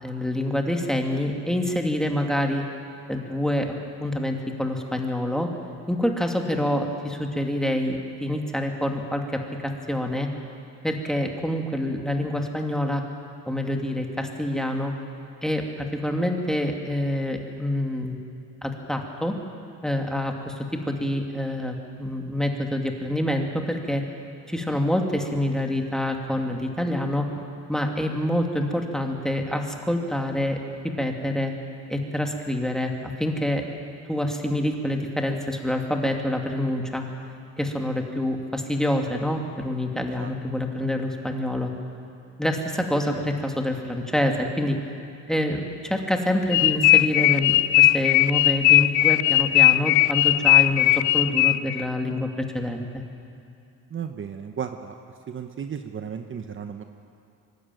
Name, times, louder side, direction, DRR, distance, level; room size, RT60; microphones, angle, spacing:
voice 1, 0.0-2.6 3.1-3.7 4.0-5.5 5.9-10.3 10.8-13.0 13.5-14.9 15.4-18.2 18.6-19.3 19.8-24.0 24.5-27.3 27.7-31.5 31.9-33.6 34.1-37.0 37.6-41.7 42.4-44.8 45.3-53.0, left 1 dB, ahead, 2 dB, 2.4 m, -26 dB
sound 1, 46.5-51.8, left 16 dB, 85° left, 0.5 m, -18 dB
voice 2, 53.9-54.9 55.3-56.8, right 7 dB, 40° right, 6 dB, 1.0 m, -34 dB
24.5 x 12.0 x 9.2 m, 2.6 s
cardioid pair, 90°, 30 cm